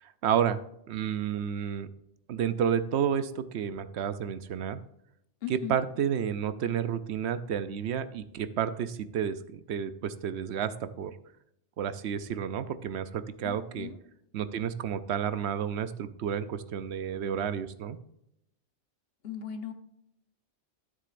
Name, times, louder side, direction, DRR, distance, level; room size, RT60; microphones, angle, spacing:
voice 1, 0.0-0.6 0.9-1.9 2.3-4.8 5.5-11.1 11.8-13.9 14.3-18.0, right 8 dB, 75° right, 12 dB, 0.9 m, -31 dB
voice 2, 5.4-5.8 13.4-14.0 19.2-19.7, left 9 dB, 60° left, 8 dB, 1.2 m, -38 dB
13.0 x 7.5 x 2.5 m, 0.78 s
omnidirectional pair, 1.2 m